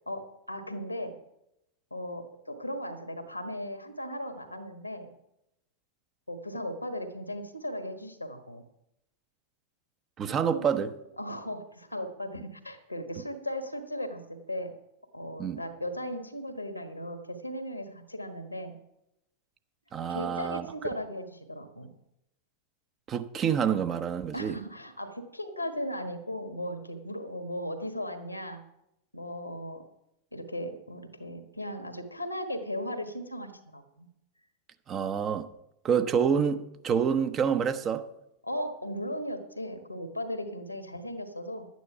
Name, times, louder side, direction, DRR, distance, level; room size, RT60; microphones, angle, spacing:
voice 1, 0.1-1.1 1.9-5.1 6.3-8.6 10.5-10.6 11.2-14.7 15.1-18.7 20.1-21.9 24.3-28.6 29.1-29.8 30.3-34.1 38.4-41.7, equal, 85° left, 1.5 m, -37 dB
voice 2, 10.2-10.9 15.4-15.6 19.9-20.7 23.1-24.6 34.9-35.5 35.8-38.1, right 7 dB, 30° right, 0.8 m, -27 dB
12.0 x 9.4 x 5.7 m
figure-of-eight pair, 90°, 0 cm